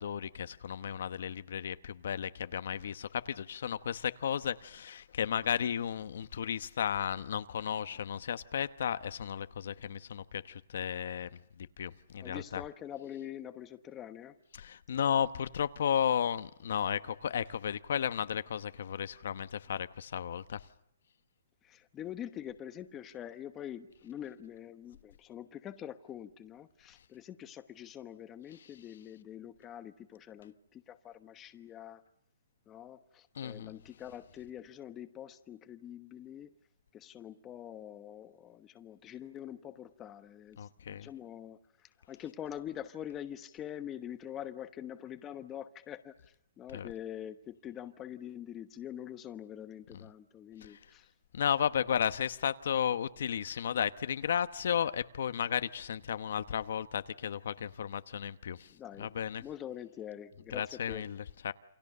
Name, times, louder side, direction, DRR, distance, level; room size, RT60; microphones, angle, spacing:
voice 1, 0.0-11.3 11.6-12.6 14.5-20.7 33.3-33.7 40.6-41.1 46.7-46.9 49.9-50.0 50.6-50.8 51.3-59.4 60.5-61.5, left 8 dB, 60° left, 1.0 m, -34 dB
voice 2, 12.2-14.4 21.6-32.0 32.7-36.5 36.9-46.1 46.6-51.1 58.7-59.1 59.4-61.0, left 10 dB, 15° left, 1.0 m, -45 dB
28.5 x 26.5 x 6.7 m
hypercardioid pair, 165°, 0 cm